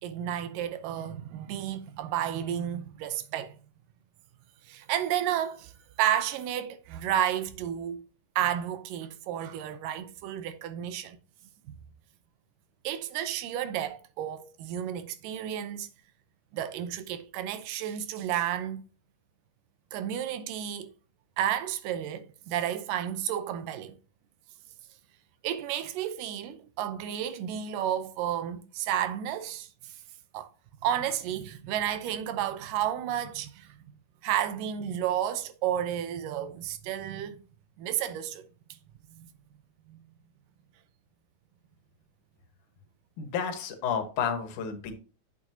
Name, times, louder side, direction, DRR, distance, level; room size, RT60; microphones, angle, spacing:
voice 1, 0.0-3.6 4.7-5.7 6.0-8.0 8.4-11.2 12.8-15.9 16.5-18.8 19.9-20.9 21.4-24.0 25.4-30.0 30.3-30.5 30.8-33.7 34.2-37.4 37.8-38.5 39.1-39.3 39.9-40.0, right 10 dB, 85° right, 2.4 m, -31 dB
voice 2, 43.2-44.9, left 7 dB, 70° left, 2.7 m, -31 dB
8.5 x 7.4 x 2.8 m
omnidirectional pair, 3.8 m